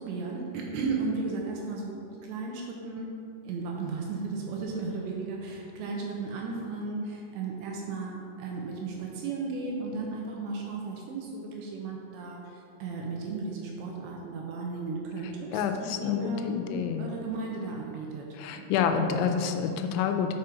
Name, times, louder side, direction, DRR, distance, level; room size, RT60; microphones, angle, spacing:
voice 1, 0.0-3.1 3.4-18.3 18.6-18.7, right 3 dB, 75° right, -1 dB, 2.9 m, -35 dB
voice 2, 15.5-17.1 18.3-20.4, left 7 dB, 85° left, 6 dB, 2.9 m, -28 dB
6.5 x 6.1 x 5.7 m, 2.6 s
omnidirectional pair, 5.4 m